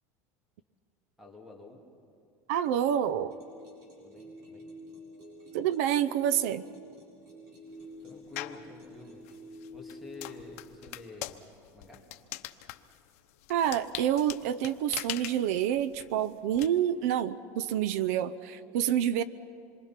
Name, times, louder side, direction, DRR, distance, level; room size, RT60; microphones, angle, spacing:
voice 1, 1.2-1.9 4.0-4.8 8.0-9.2 9.7-12.1, left 3 dB, ahead, 1 dB, 2.5 m, -49 dB
voice 2, 2.5-3.3 5.5-6.6 13.5-19.2, right 10 dB, 75° right, 16 dB, 0.6 m, -28 dB
sound 1, 3.3-10.5, equal, 60° right, 7.8 m, -49 dB
sound 2, 8.4-8.7 9.2-16.7, left 16 dB, 85° left, 0.9 m, -41 dB
27.0 x 23.0 x 5.9 m, 2.5 s
cardioid pair, 170°, 8 cm